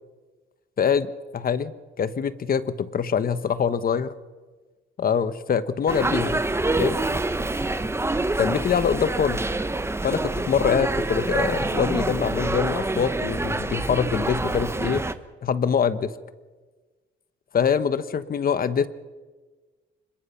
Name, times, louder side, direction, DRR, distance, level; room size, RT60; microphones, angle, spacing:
voice 1, 0.8-4.1 5.0-6.4 6.8-7.0 8.4-9.4 10.0-15.0 15.4-16.1 17.5-18.9, left 7 dB, 50° left, 13 dB, 1.2 m, -24 dB
sound 1, 5.9-15.1, right 2 dB, 15° right, 1.1 m, -26 dB
25.5 x 21.5 x 5.8 m, 1.3 s
cardioid pair, 90°, 20 cm